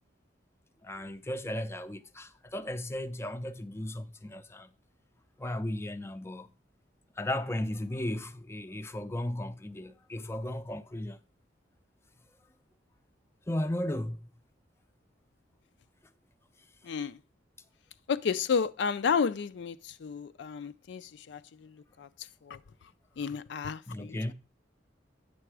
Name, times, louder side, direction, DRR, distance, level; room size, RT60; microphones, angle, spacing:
voice 1, 0.8-4.7 5.4-6.5 7.2-11.2 13.5-14.3 23.9-24.3, left 1 dB, 15° left, 0.5 m, -35 dB
voice 2, 18.1-19.8 20.0-21.0 21.3-21.4 22.0-22.1 22.5-22.6 23.2-24.2, left 6 dB, 65° left, 0.4 m, -31 dB
8.9 x 6.9 x 4.7 m
head